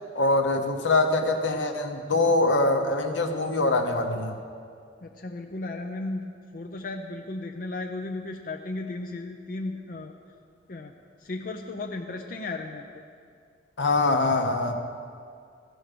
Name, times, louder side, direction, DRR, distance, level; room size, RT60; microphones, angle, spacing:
voice 1, 0.1-4.3 13.8-14.7, left 2 dB, 80° left, 5 dB, 0.9 m, -23 dB
voice 2, 5.0-10.1 10.7-10.9 11.2-12.9, left 2 dB, 50° left, 2 dB, 0.5 m, -35 dB
14.5 x 6.2 x 6.8 m, 2.3 s
head